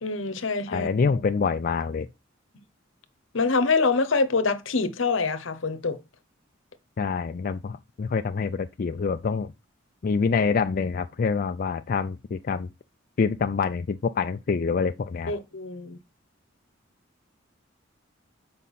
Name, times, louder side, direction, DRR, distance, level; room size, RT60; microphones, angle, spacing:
voice 1, 0.0-0.9 3.3-6.0 15.3-16.0, left 4 dB, 70° left, 0.9 m, -25 dB
voice 2, 0.7-2.1 7.0-9.5 10.0-12.7 13.2-15.3, left 5 dB, 45° left, 0.4 m, -26 dB
7.3 x 5.2 x 4.1 m
head